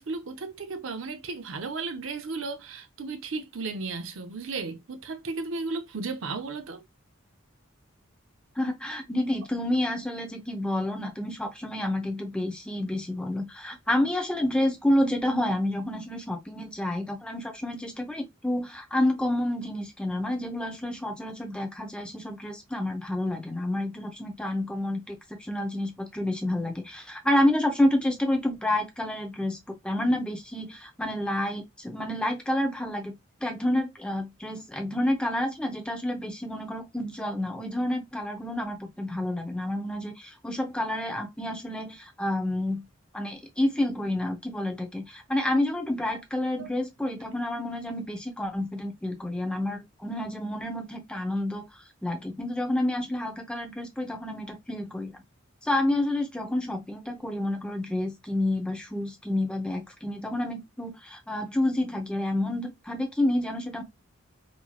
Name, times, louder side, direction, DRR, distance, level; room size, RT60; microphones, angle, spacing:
voice 1, 0.0-6.8 45.5-45.6 46.6-46.7, right 3 dB, 70° right, 0.6 m, -34 dB
voice 2, 8.6-33.1 33.4-42.8 43.1-51.6 52.0-55.1 55.6-63.8, left 1 dB, 5° left, 0.6 m, -29 dB
3.0 x 2.7 x 2.2 m
head